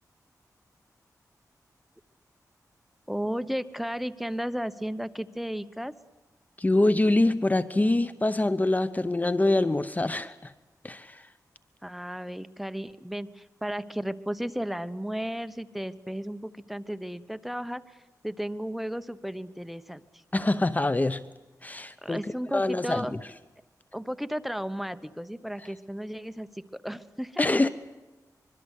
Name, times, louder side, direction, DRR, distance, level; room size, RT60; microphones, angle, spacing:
voice 1, 3.1-5.9 11.8-18.0 18.2-20.0 22.0-23.1 23.9-27.4, equal, ahead, 12 dB, 1.0 m, -34 dB
voice 2, 6.6-10.5 10.8-11.3 20.3-21.2 21.6-22.2 22.5-23.2 25.6-25.7 27.4-27.7, left 2 dB, 25° left, 14 dB, 0.8 m, -25 dB
24.5 x 22.5 x 8.3 m, 1.2 s
wide cardioid pair, 75°, 7 cm